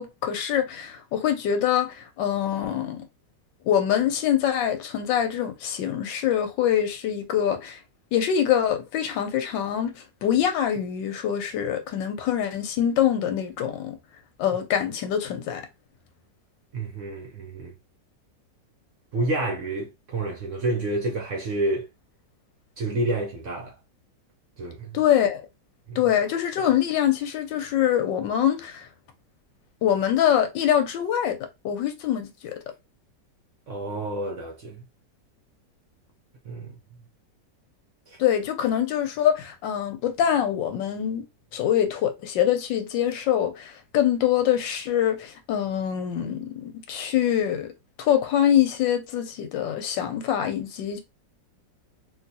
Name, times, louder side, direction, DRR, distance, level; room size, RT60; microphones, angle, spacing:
voice 1, 0.0-3.1 3.7-7.8 8.1-14.0 14.4-15.6 24.9-25.5 26.0-28.9 29.8-32.6 38.2-41.3 41.5-47.7 48.0-51.0, left 10 dB, 85° left, 1.4 m, -24 dB
voice 2, 16.7-17.7 19.1-21.9 22.8-23.8 24.6-25.0 25.9-26.0 33.7-34.8 36.4-36.7 38.1-38.2, right 2 dB, 60° right, 0.8 m, -29 dB
3.7 x 2.6 x 2.7 m
omnidirectional pair, 1.9 m